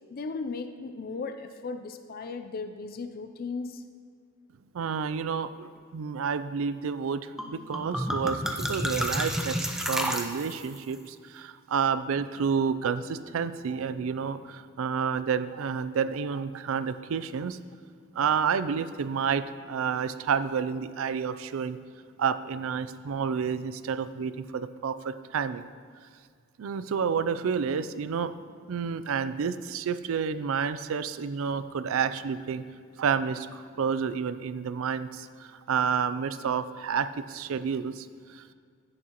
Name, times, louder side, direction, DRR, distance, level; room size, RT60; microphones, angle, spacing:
voice 1, 0.1-3.8, left 4 dB, 45° left, 8 dB, 0.4 m, -36 dB
voice 2, 4.7-17.6 18.1-21.8 22.2-25.7 26.6-32.6 33.0-38.4, right 6 dB, 70° right, 13 dB, 0.4 m, -30 dB
sound 1, 7.4-7.5 7.7-10.8, equal, ahead, 0.6 m, -30 dB
10.5 x 8.9 x 2.9 m, 2.1 s
head